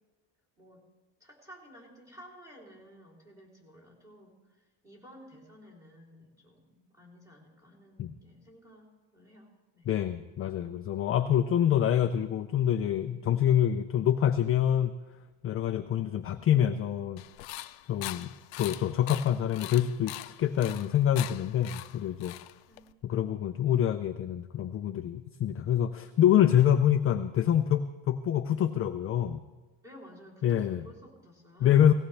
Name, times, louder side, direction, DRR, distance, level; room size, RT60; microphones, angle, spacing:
voice 1, 1.2-9.9 22.7-22.9 29.8-31.9, equal, 5° right, -2 dB, 3.3 m, -53 dB
voice 2, 9.9-14.9 15.4-17.2 17.9-18.3 18.6-22.3 23.0-29.4 30.4-30.8 31.6-31.9, left 10 dB, 35° left, 7 dB, 0.4 m, -26 dB
sound 1, 17.2-22.9, left 16 dB, 80° left, 0.7 m, -42 dB
18.5 x 17.0 x 3.3 m, 1.2 s
cardioid pair, 165°, 43 cm